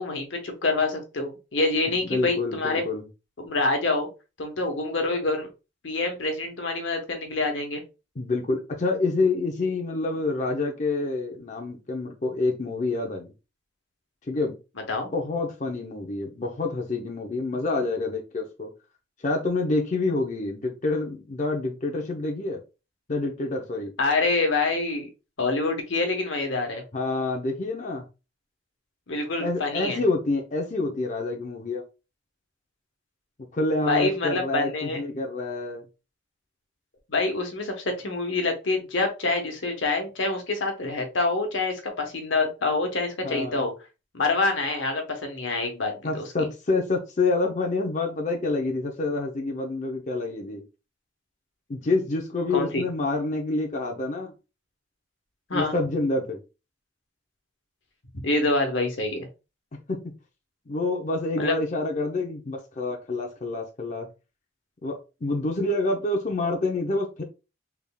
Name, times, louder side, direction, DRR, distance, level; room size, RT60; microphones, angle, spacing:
voice 1, 0.0-2.8 3.4-4.1 4.4-5.5 5.8-7.8 14.9-15.1 24.0-25.1 25.4-26.8 29.1-30.0 33.8-35.0 37.1-43.7 44.1-46.2 52.5-52.9 55.5-55.7 58.2-59.3 61.4-61.5, left 3 dB, 85° left, 1.0 m, -26 dB
voice 2, 2.0-3.0 8.2-13.3 14.3-14.6 15.1-18.7 19.2-22.6 23.1-23.9 26.9-28.1 29.4-31.8 33.5-35.8 43.2-43.6 46.0-50.6 51.7-54.3 55.5-56.4 59.9-60.0 60.7-64.1 64.8-67.2, left 2 dB, 40° left, 0.6 m, -27 dB
3.6 x 3.4 x 2.2 m
head